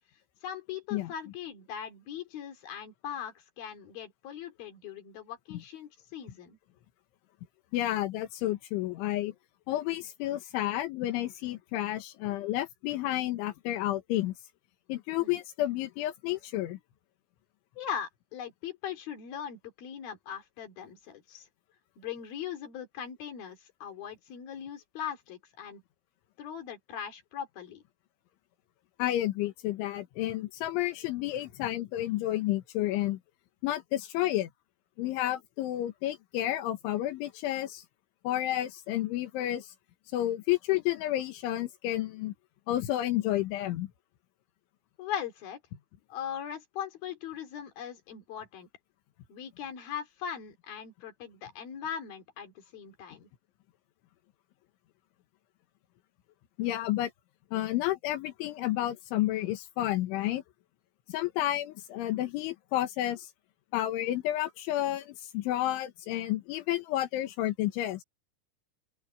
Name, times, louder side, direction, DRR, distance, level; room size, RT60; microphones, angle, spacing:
voice 1, 0.4-6.6 15.2-15.4 17.8-21.5 22.0-25.8 26.4-27.8 45.0-45.6 46.1-48.7 49.3-53.3, left 8 dB, 55° left, 4.7 m, -40 dB
voice 2, 7.7-9.3 9.7-14.3 14.9-16.8 29.0-33.2 33.6-34.5 35.0-37.8 38.3-39.7 40.1-42.3 42.7-43.9 56.6-57.1 57.5-60.4 61.1-63.3 63.7-68.0, left 14 dB, 85° left, 3.8 m, -31 dB
open air
omnidirectional pair, 5.4 m